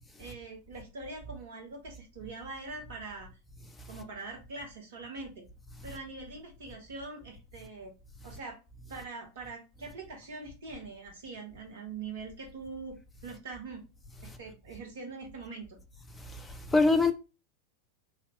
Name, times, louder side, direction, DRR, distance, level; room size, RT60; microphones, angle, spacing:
voice 1, 0.2-3.3 3.9-5.4 5.8-7.9 8.2-8.6 8.9-12.9 13.2-13.8 14.2-15.8, right 3 dB, 60° right, 0.9 m, -43 dB
voice 2, 16.2-17.1, left 3 dB, 10° left, 0.5 m, -27 dB
3.1 x 2.9 x 3.0 m
figure-of-eight pair, 90°, 0 cm